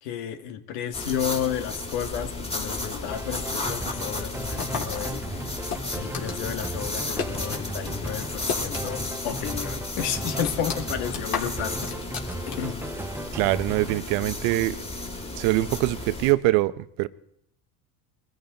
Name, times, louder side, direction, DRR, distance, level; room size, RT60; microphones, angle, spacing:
voice 1, 0.0-5.5 5.9-11.8 12.5-12.8, left 9 dB, 80° left, 1.9 m, -32 dB
sound 1, 0.9-16.3, left 2 dB, 10° left, 2.3 m, -33 dB
sound 2, 2.8-14.0, right 2 dB, 5° right, 0.5 m, -37 dB
sound 3, 4.6-7.7 8.0-9.2 9.5-9.6 10.0-12.9, left 6 dB, 45° left, 3.5 m, -34 dB
voice 2, 13.3-14.8 15.4-17.1, right 18 dB, 70° right, 0.8 m, -23 dB
22.5 x 14.0 x 3.9 m
supercardioid pair, 100°, 48 cm